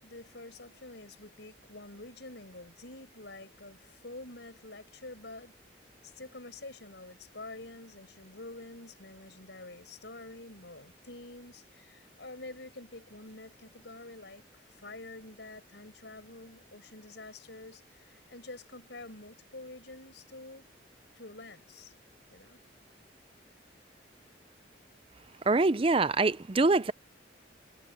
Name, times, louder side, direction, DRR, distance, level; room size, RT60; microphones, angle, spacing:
voice 1, 0.0-5.6 6.0-20.6 21.1-21.9 22.3-22.6, left 2 dB, 70° left, 5.1 m, -47 dB
voice 2, 25.5-26.9, right 3 dB, 30° right, 0.5 m, -24 dB
head